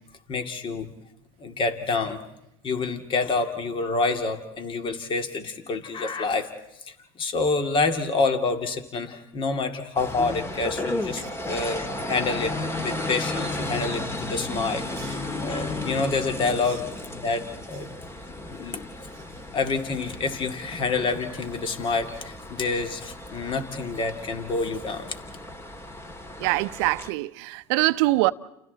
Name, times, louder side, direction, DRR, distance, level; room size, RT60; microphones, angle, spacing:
voice 1, 0.3-0.9 1.4-2.2 2.6-6.5 7.2-16.8 17.2-17.9 18.3-18.9 19.5-25.1, left 3 dB, 35° left, 2.5 m, -27 dB
sound 1, 10.0-27.1, left 2 dB, 15° left, 1.9 m, -34 dB
voice 2, 26.4-28.3, right 21 dB, 65° right, 0.8 m, -23 dB
29.5 x 29.0 x 4.1 m
hypercardioid pair, 95°, 15 cm